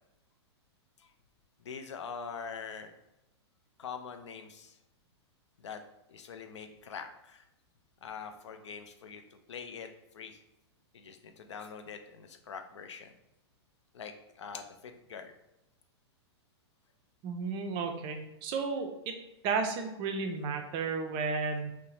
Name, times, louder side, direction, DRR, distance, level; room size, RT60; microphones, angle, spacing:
voice 1, 1.6-2.9 3.8-4.8 5.6-5.8 6.1-7.4 8.0-10.4 10.9-13.1 13.9-15.3, left 6 dB, 90° left, 7 dB, 0.4 m, -44 dB
voice 2, 17.2-19.1 19.4-21.8, right 4 dB, 35° right, 5 dB, 0.4 m, -33 dB
2.6 x 2.0 x 3.0 m, 0.90 s
hypercardioid pair, 125°, 15 cm